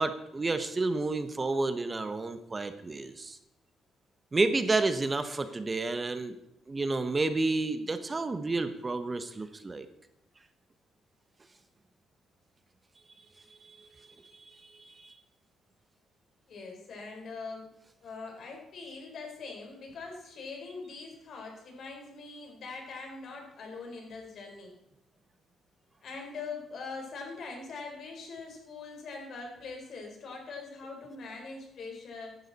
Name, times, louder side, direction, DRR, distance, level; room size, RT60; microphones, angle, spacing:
voice 1, 0.0-3.4 4.3-6.3 6.7-9.9 13.6-13.8 14.9-15.1, right 3 dB, 25° right, 10 dB, 1.0 m, -30 dB
voice 2, 16.5-17.7 18.0-24.7 26.0-32.4, left 4 dB, 60° left, 2 dB, 4.3 m, -42 dB
15.0 x 11.5 x 4.2 m, 0.82 s
cardioid pair, 90°, 0 cm